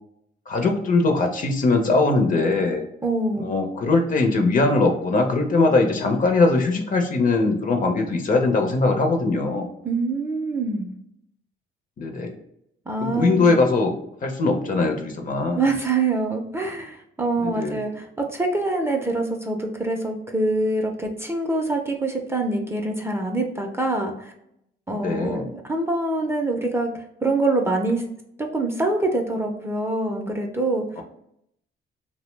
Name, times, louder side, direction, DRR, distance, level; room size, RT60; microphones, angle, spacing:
voice 1, 0.5-2.9 3.4-9.7 12.0-12.3 13.0-13.9 14.2-15.6 17.4-17.8 24.9-25.4 31.0-31.1, left 3 dB, 45° left, 5 dB, 0.6 m, -21 dB
voice 2, 3.0-3.5 9.8-10.9 12.9-13.5 15.5-24.3 24.9-26.9 27.2-28.0 28.4-30.9, right 2 dB, 10° right, 2 dB, 0.4 m, -25 dB
2.6 x 2.0 x 3.1 m, 0.76 s
cardioid pair, 90°, 20 cm